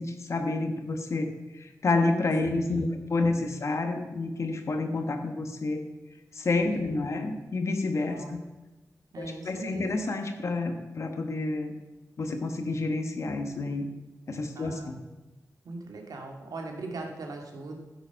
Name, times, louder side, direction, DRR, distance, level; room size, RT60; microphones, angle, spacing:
voice 1, 0.0-5.9 6.3-8.4 9.2-11.8 12.2-13.9 14.3-15.0, left 3 dB, 50° left, 6 dB, 1.4 m, -29 dB
voice 2, 2.4-3.0 3.3-3.6 6.6-7.3 8.1-8.4 9.1-9.9 14.5-14.9 15.6-17.8, right 2 dB, 85° right, 2 dB, 2.2 m, -40 dB
15.0 x 8.0 x 5.8 m, 1.1 s
wide cardioid pair, 160°, 6 cm